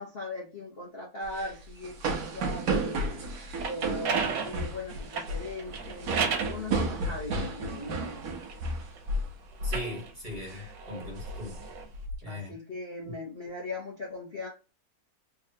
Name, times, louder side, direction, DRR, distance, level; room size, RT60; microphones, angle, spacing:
voice 1, 0.0-3.0 3.6-8.3 10.4-10.7 12.3-14.5, left 2 dB, 45° left, 0.9 m, -39 dB
sound 1, 1.2-9.3 9.6-9.9 10.2-10.6 11.0-12.2, right 2 dB, 60° right, 1.2 m, -33 dB
sound 2, 3.4-6.6 7.3-9.0 9.6-11.9, right 5 dB, 85° right, 1.6 m, -35 dB
voice 2, 9.6-11.6 12.2-12.5 13.0-13.1, left 1 dB, 30° right, 1.4 m, -39 dB
3.6 x 3.1 x 2.8 m
omnidirectional pair, 1.9 m